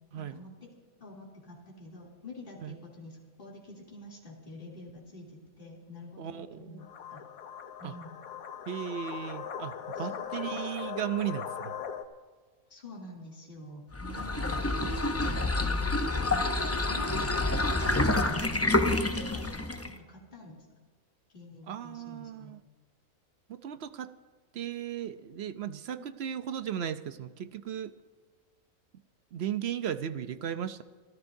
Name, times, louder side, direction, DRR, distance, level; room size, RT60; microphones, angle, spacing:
voice 1, 0.1-0.7 1.0-7.2 7.8-8.2 10.0-10.6 12.7-20.6 21.3-22.5 26.0-26.1, left 2 dB, 35° left, -4 dB, 3.1 m, -47 dB
voice 2, 6.2-6.9 7.8-8.0 8.7-11.7 14.3-15.0 21.7-22.6 23.5-24.1 24.5-27.9 29.3-30.8, right 9 dB, 60° right, 12 dB, 0.7 m, -36 dB
sound 1, 6.8-12.0, left 8 dB, 80° left, 1.3 m, -39 dB
sound 2, 13.9-20.0, left 2 dB, 15° left, 0.4 m, -28 dB
26.0 x 14.0 x 2.7 m, 1.5 s
omnidirectional pair, 1.5 m